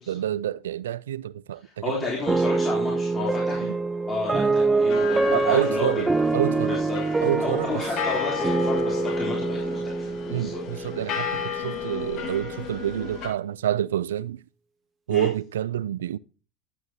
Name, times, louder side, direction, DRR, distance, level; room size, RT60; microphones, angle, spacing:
voice 1, 0.1-2.0 3.6-3.8 5.3-6.8 7.2-7.8 10.3-14.4 15.1-16.2, right 11 dB, 90° right, 0.3 m, -28 dB
voice 2, 1.6-3.8 4.1-6.0 6.6-10.6 11.0-11.2 15.1-15.3, left 3 dB, 30° left, 3.2 m, -32 dB
sound 1, 2.3-11.4, right 3 dB, 15° right, 0.6 m, -25 dB
sound 2, 4.9-13.3, left 8 dB, 55° left, 1.6 m, -33 dB
11.0 x 7.9 x 2.8 m
hypercardioid pair, 90°, 0 cm